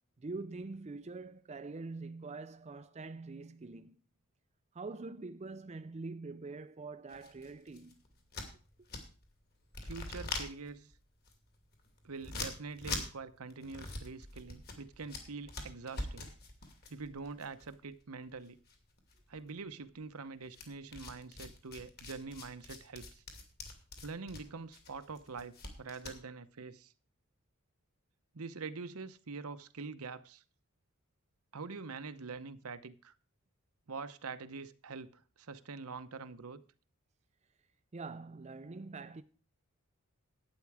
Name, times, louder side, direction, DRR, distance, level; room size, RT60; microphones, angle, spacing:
voice 1, 0.2-4.0 4.7-8.0 37.9-39.2, right 3 dB, 30° right, 0.5 m, -44 dB
sound 1, 7.1-9.3 9.6-18.4 18.7-19.5 20.5-26.2, left 3 dB, 45° left, 2.6 m, -44 dB
voice 2, 9.8-10.9 12.0-16.3 16.9-18.6 19.3-23.2 24.0-26.9 28.3-30.4 31.5-33.1 33.9-36.6, right 4 dB, 75° right, 0.8 m, -45 dB
11.5 x 9.0 x 4.8 m
head